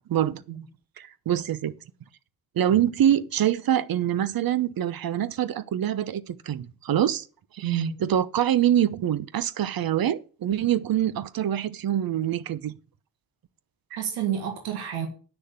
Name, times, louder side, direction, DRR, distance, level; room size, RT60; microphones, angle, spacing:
voice 1, 1.0-1.7 2.5-7.3 7.5-12.7, right 11 dB, 65° right, 1.0 m, -25 dB
voice 2, 7.6-7.9 13.9-15.1, right 9 dB, 85° right, 1.8 m, -29 dB
9.4 x 6.6 x 8.0 m
supercardioid pair, 45°, 38 cm